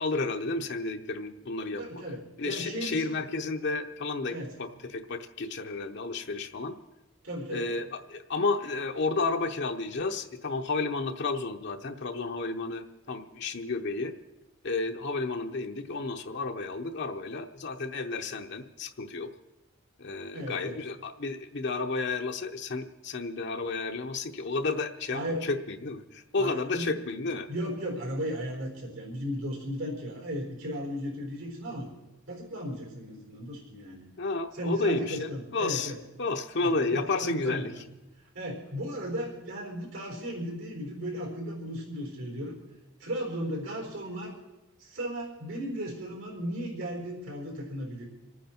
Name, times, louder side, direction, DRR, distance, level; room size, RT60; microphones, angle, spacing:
voice 1, 0.0-2.0 2.4-6.7 7.5-14.1 14.6-19.3 20.0-27.5 34.2-35.9 36.2-37.7, left 3 dB, 55° left, 5 dB, 0.8 m, -32 dB
voice 2, 1.8-3.2 4.3-4.5 7.2-7.7 20.3-20.8 25.1-25.4 26.4-26.9 27.2-31.9 32.3-34.0 34.5-36.0 36.6-37.7 38.3-42.6 43.0-44.4 44.8-48.1, equal, 75° right, -1 dB, 4.2 m, -36 dB
26.5 x 9.4 x 4.4 m, 0.98 s
head